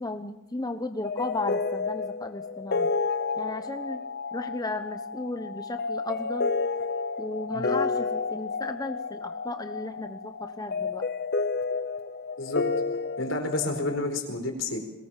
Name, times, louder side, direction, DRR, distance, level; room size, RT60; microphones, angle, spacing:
voice 1, 0.0-2.9 3.4-4.0 4.3-6.5 7.2-11.0, left 2 dB, 20° left, 7 dB, 1.0 m, -35 dB
sound 1, 1.0-14.0, left 4 dB, 55° left, 0.7 m, -31 dB
voice 2, 13.2-14.8, left 2 dB, 75° left, 5 dB, 4.6 m, -29 dB
22.5 x 19.0 x 7.5 m, 0.94 s
head